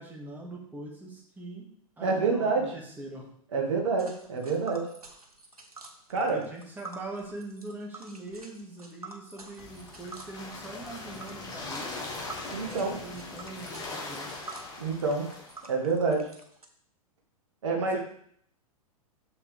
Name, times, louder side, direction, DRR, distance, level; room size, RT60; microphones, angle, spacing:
voice 1, 0.0-1.7 2.0-3.3 6.2-12.3 12.6-14.3 17.7-18.0, right 2 dB, 10° right, -1 dB, 1.9 m, -42 dB
voice 2, 2.0-2.7 3.5-4.9 6.1-6.4 12.5-13.0 14.8-15.3 15.7-16.3 17.6-18.0, right 4 dB, 55° right, 0 dB, 1.9 m, -27 dB
Tick, 4.0-16.7, right 3 dB, 80° right, 1.2 m, -48 dB
sound 1, 9.6-15.7, left 3 dB, 20° left, 1.8 m, -40 dB
6.8 x 6.8 x 3.4 m, 0.64 s
figure-of-eight pair, 100°, 19 cm